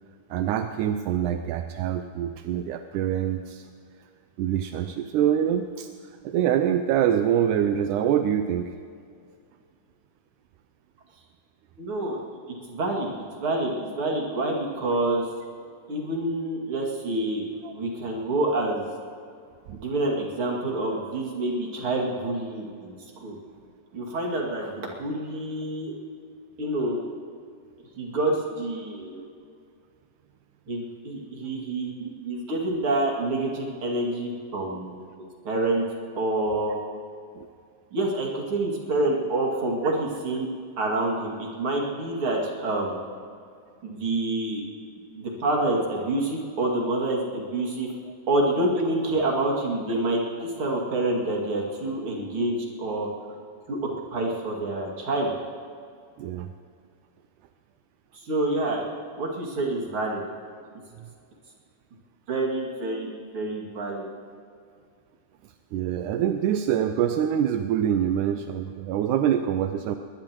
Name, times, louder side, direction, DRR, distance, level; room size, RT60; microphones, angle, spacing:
voice 1, 0.3-3.7 4.4-5.9 6.2-8.7 17.6-17.7 19.7-19.8 37.4-37.5 39.8-39.9 56.2-56.5 65.7-70.0, right 9 dB, 80° right, 7 dB, 1.9 m, -25 dB
voice 2, 11.8-12.2 12.7-13.1 13.4-15.2 15.9-17.4 17.7-18.9 19.7-23.4 23.9-25.9 26.6-27.0 28.0-29.3 30.7-34.9 35.4-35.8 36.2-36.8 37.9-40.5 40.8-43.0 43.8-44.6 45.2-47.9 48.3-53.1 53.7-53.8 54.1-55.3 58.1-58.8 59.2-60.2 62.3-64.0, right 2 dB, 40° right, -2 dB, 3.0 m, -27 dB
21.5 x 21.0 x 3.1 m, 2.3 s
omnidirectional pair, 4.1 m